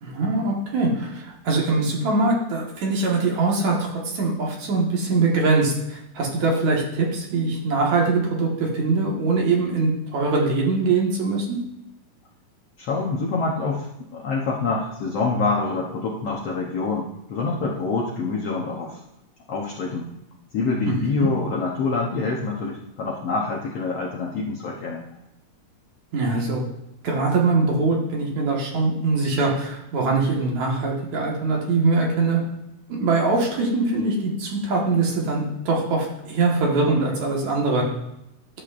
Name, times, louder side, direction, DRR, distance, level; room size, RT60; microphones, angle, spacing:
voice 1, 0.0-3.9 4.1-11.6 20.9-21.3 26.1-26.6 27.0-32.4 32.9-37.8, right 3 dB, 60° right, -2 dB, 2.7 m, -22 dB
voice 2, 12.8-13.9 14.1-19.0 19.5-20.1 20.5-25.1, left 3 dB, 65° left, -2 dB, 1.6 m, -26 dB
12.0 x 8.3 x 2.5 m, 0.86 s
omnidirectional pair, 3.8 m